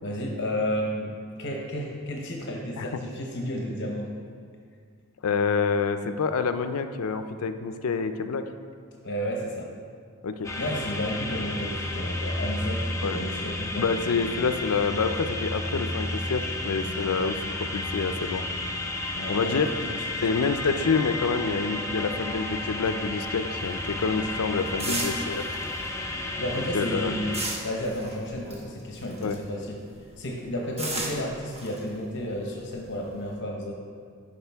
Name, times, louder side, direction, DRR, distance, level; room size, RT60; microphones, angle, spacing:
voice 1, 0.0-4.1 9.0-9.7 10.6-13.8 19.1-19.7 24.9-25.1 26.4-27.4 27.6-29.8 30.2-33.8, equal, 50° left, 0 dB, 0.8 m, -32 dB
voice 2, 5.2-8.4 10.2-10.5 13.0-13.2 13.8-17.4 17.7-18.4 19.3-19.7 20.2-25.4 26.5-27.1 29.2-29.4, left 5 dB, 75° left, 9 dB, 0.4 m, -27 dB
sound 1, 10.4-27.5, left 2 dB, 15° left, 0.5 m, -32 dB
sound 2, 23.5-29.6 29.9-33.3, right 2 dB, 30° right, 1.0 m, -36 dB
11.0 x 4.9 x 3.5 m, 2.1 s
head